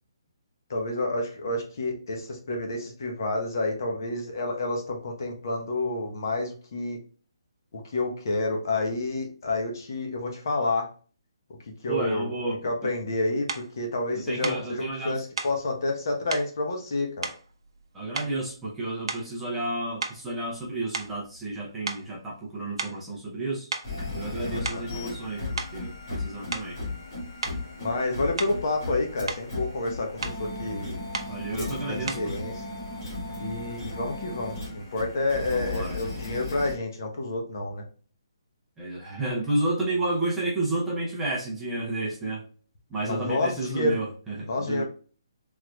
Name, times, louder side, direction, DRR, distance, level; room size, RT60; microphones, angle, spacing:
voice 1, 0.7-7.0 7.7-10.9 11.8-12.3 12.6-13.5 13.8-17.3 24.5-24.8 27.8-31.0 31.6-32.6 33.4-37.8 43.0-44.0 44.5-44.8, left 2 dB, 45° left, 2 dB, 1.0 m, -29 dB
voice 2, 11.9-12.9 14.1-15.2 17.9-23.7 24.1-25.4 25.7-26.8 31.3-32.3 35.5-36.0 38.8-42.4 42.9-44.8, right 2 dB, 5° right, -7 dB, 0.6 m, -31 dB
sound 1, 13.5-13.7 14.4-14.7 15.4-15.6 16.3-16.5 17.2-17.8 18.1-18.5 19.0-19.4 20.0-21.6 21.9-22.1 22.8-23.1 23.7-23.9 24.5-24.9 25.6-25.8 26.5-26.8 27.4-27.6 28.4-28.7 29.0-29.5 30.2-30.4 31.1-31.4 32.1-32.3, right 4 dB, 70° right, 0.6 m, -34 dB
sound 2, 23.8-36.7, left 2 dB, 25° left, 1.8 m, -36 dB
3.7 x 3.2 x 2.2 m, 0.40 s
hypercardioid pair, 170°, 3 cm